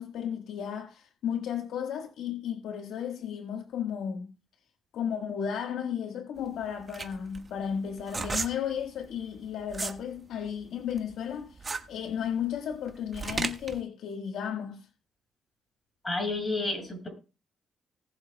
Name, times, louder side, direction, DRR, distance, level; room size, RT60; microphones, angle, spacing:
voice 1, 0.0-4.3 4.9-14.9, left 8 dB, 80° left, 1.4 m, -34 dB
sound 1, 6.4-10.0 10.4-13.8, right 4 dB, 30° right, 1.3 m, -35 dB
voice 2, 16.0-17.1, left 2 dB, 20° left, 7.0 m, -30 dB
19.5 x 6.9 x 2.2 m
cardioid pair, 90°, 0 cm